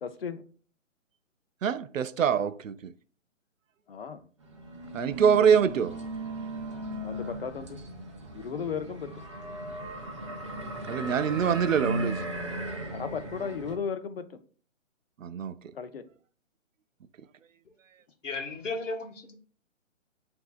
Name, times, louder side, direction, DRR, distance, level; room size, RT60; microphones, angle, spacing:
voice 1, 0.0-0.4 3.9-4.2 7.0-7.8 8.3-9.1 12.9-14.4 15.7-16.0, left 6 dB, 45° left, 0.6 m, -35 dB
voice 2, 1.6-2.9 4.9-6.0 10.9-12.2 15.2-15.5, right 7 dB, 75° right, 0.5 m, -24 dB
sound 1, 4.4-13.8, right 1 dB, 25° right, 0.6 m, -37 dB
voice 3, 18.2-19.3, left 3 dB, 65° left, 1.1 m, -34 dB
7.7 x 2.7 x 2.4 m
figure-of-eight pair, 150°, 40 cm